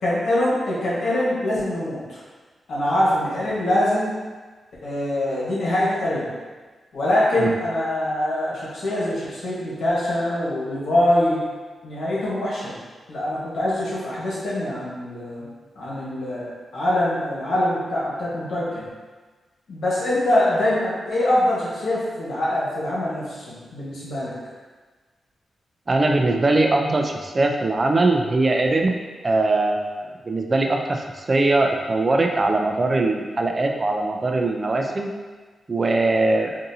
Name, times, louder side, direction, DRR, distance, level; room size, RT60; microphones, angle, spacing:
voice 1, 0.0-2.2 2.7-4.1 4.8-6.3 6.9-11.4 11.8-12.8 13.1-15.5 15.7-18.8 19.7-24.3, left 1 dB, 80° left, -8 dB, 1.2 m, -23 dB
voice 2, 25.9-35.1 35.7-36.6, right 2 dB, 35° right, 3 dB, 0.4 m, -21 dB
4.0 x 2.6 x 2.7 m, 1.4 s
cardioid pair, 90°, 0 cm